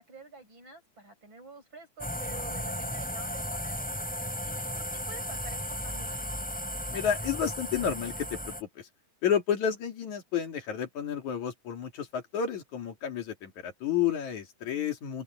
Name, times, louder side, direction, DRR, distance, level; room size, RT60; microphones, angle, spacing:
voice 1, 0.0-3.8 4.1-6.4, right 4 dB, 35° right, 7.9 m, -49 dB
sound 1, 2.0-8.6, equal, ahead, 4.9 m, -35 dB
voice 2, 6.9-8.9 9.2-15.2, left 8 dB, 65° left, 4.0 m, -31 dB
open air
omnidirectional pair, 3.6 m